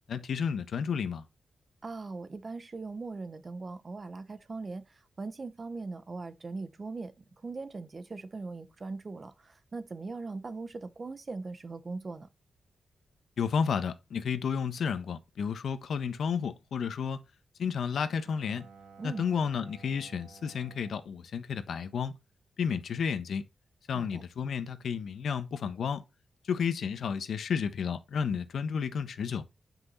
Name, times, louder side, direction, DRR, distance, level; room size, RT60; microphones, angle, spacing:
voice 1, 0.1-1.2 13.4-17.2 17.6-18.7 19.0-22.2 22.6-23.4 23.9-26.1 26.5-29.4, left 6 dB, 75° left, 1.4 m, -32 dB
voice 2, 1.8-12.3 19.0-19.2 23.9-24.2, right 3 dB, 35° right, 1.0 m, -40 dB
Bowed string instrument, 18.1-22.5, right 4 dB, 85° right, 2.8 m, -55 dB
11.0 x 6.2 x 4.2 m
wide cardioid pair, 140°, 0 cm